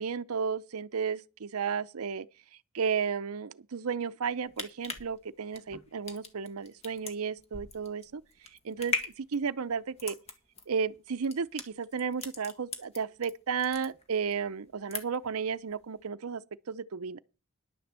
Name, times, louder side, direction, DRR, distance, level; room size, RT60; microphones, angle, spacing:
voice 1, 0.0-2.3 2.7-8.2 8.6-10.2 10.7-16.4 16.7-17.2, right 6 dB, 75° right, 0.6 m, -33 dB
sound 1, 4.3-13.3 13.6-14.4 14.7-15.3 15.7-15.8, left 3 dB, 30° left, 1.5 m, -39 dB
11.0 x 6.9 x 7.5 m
head